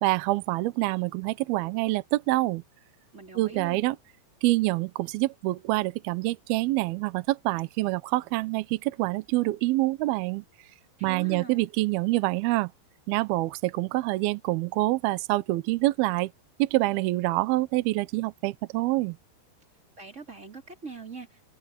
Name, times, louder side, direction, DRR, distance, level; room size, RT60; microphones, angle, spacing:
voice 1, 0.0-2.6 3.4-4.0 4.4-10.4 11.0-12.7 13.1-16.3 16.6-19.2, right 19 dB, 75° right, 2.5 m, -26 dB
voice 2, 3.1-3.9 11.0-11.7 20.0-21.5, right 4 dB, 15° right, 4.1 m, -42 dB
omnidirectional pair, 4.9 m